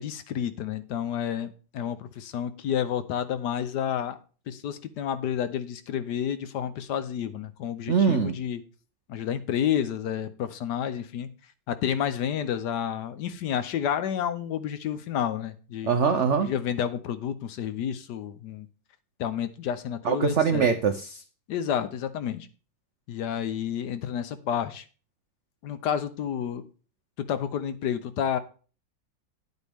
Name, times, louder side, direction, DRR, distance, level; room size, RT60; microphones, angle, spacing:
voice 1, 0.0-4.2 4.5-8.6 9.1-11.3 11.7-15.9 16.4-18.7 19.2-20.7 21.5-22.5 23.1-24.8 25.6-26.7 27.2-28.4, left 9 dB, 70° left, 12 dB, 1.1 m, -30 dB
voice 2, 7.9-8.3 15.9-16.5 20.0-21.2, right 6 dB, 90° right, 7 dB, 0.6 m, -23 dB
10.0 x 8.2 x 3.5 m, 0.38 s
omnidirectional pair, 2.1 m